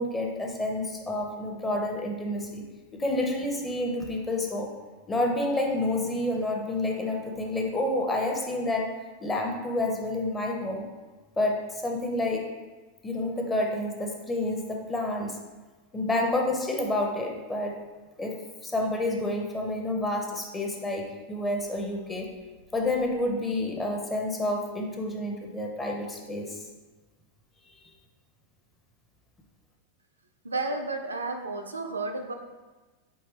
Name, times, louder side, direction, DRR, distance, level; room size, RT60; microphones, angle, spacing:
voice 1, 0.0-2.6 3.0-4.7 5.1-10.9 11.4-12.5 13.0-15.4 15.9-17.8 18.2-22.3 22.7-26.6 27.7-27.8, left 1 dB, 15° left, 0 dB, 0.7 m, -29 dB
voice 2, 30.4-32.3, right 3 dB, 75° right, 4 dB, 0.3 m, -32 dB
4.6 x 2.9 x 3.1 m, 1.2 s
figure-of-eight pair, 90°, 0 cm